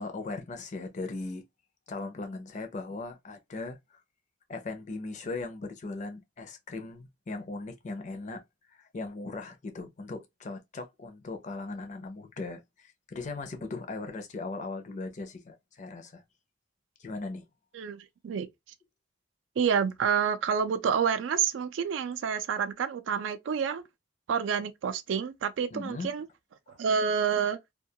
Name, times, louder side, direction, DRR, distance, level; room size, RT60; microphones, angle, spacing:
voice 1, 0.0-1.4 1.9-4.0 4.5-8.4 8.7-16.2 17.0-17.5 25.7-26.1 26.7-26.8, left 3 dB, 40° left, 0.4 m, -38 dB
voice 2, 17.7-18.5 19.6-23.8 24.3-26.3 26.8-27.6, right 7 dB, 80° right, 0.3 m, -28 dB
2.2 x 2.2 x 2.6 m
head